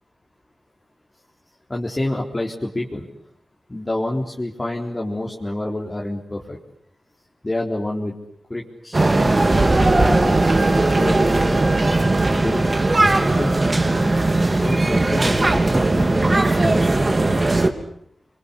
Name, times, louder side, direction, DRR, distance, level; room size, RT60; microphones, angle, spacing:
voice 1, 1.7-3.1 3.7-6.6 7.4-8.1 8.5-9.2 9.5-10.5 11.0-11.6 12.3-12.7 13.0-13.1 13.4-14.3 14.5-17.1, left 1 dB, 25° left, -1 dB, 4.0 m, -28 dB
sound 1, 8.9-17.7, right 2 dB, 35° right, 3.3 m, -18 dB
29.0 x 24.0 x 8.3 m, 0.70 s
cardioid pair, 60°, 0 cm